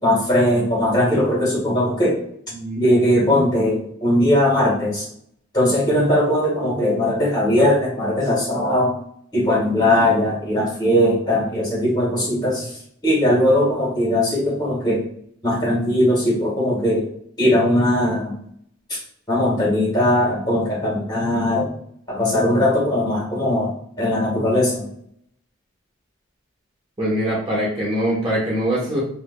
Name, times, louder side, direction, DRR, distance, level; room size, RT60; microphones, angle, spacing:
voice 1, 0.0-2.2 2.7-5.1 5.5-8.9 9.3-12.7 13.0-15.0 15.4-17.1 17.4-18.4 18.9-19.0 19.3-21.7 22.1-24.9, left 1 dB, 20° left, -5 dB, 1.3 m, -19 dB
voice 2, 2.5-2.9 3.3-3.4 12.3-12.6 27.0-29.0, equal, 25° right, -6 dB, 0.9 m, -23 dB
4.6 x 2.3 x 2.2 m, 0.67 s
head